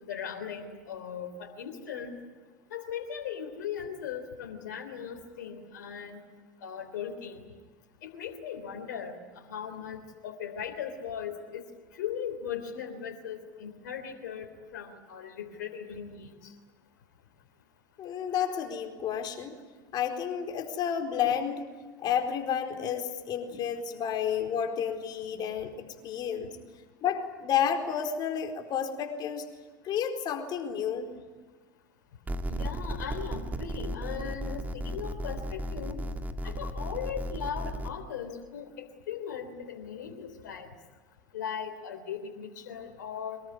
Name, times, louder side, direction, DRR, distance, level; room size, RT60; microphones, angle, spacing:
voice 1, 0.1-2.2 2.7-6.2 6.6-7.4 8.0-11.7 11.9-14.5 14.7-16.5 32.5-36.0 36.4-40.7 41.3-43.4, left 8 dB, 75° left, 4 dB, 3.4 m, -38 dB
voice 2, 18.0-19.6 19.9-21.7 22.0-25.7 26.0-26.6 27.0-29.4 29.8-31.1, left 8 dB, 45° left, 4 dB, 4.3 m, -31 dB
sound 1, 32.3-37.9, right 1 dB, 15° right, 2.0 m, -35 dB
24.0 x 21.5 x 9.7 m, 1.4 s
hypercardioid pair, 80°, 10 cm